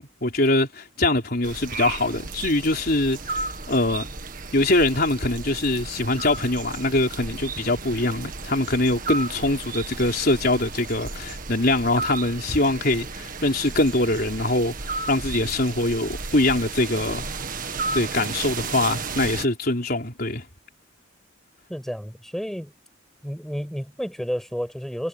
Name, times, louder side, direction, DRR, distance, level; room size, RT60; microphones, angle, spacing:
voice 1, 0.0-4.1 4.5-17.3 17.9-20.5, left 2 dB, 50° left, 4.1 m, -23 dB
sound 1, 1.4-19.5, right 4 dB, 45° right, 1.8 m, -34 dB
voice 2, 21.7-22.7 23.2-25.1, equal, ahead, 7.0 m, -31 dB
head